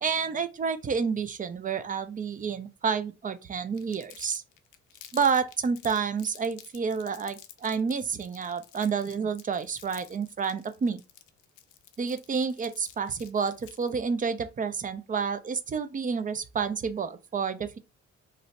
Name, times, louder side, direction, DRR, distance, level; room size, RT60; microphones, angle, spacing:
voice 1, 0.0-4.4 5.1-11.0 12.0-17.8, right 6 dB, 30° right, 0.4 m, -29 dB
Crumpling crinkling, 3.7-14.0, left 11 dB, 80° left, 0.5 m, -51 dB
2.6 x 2.1 x 3.9 m
cardioid pair, 90°, 30 cm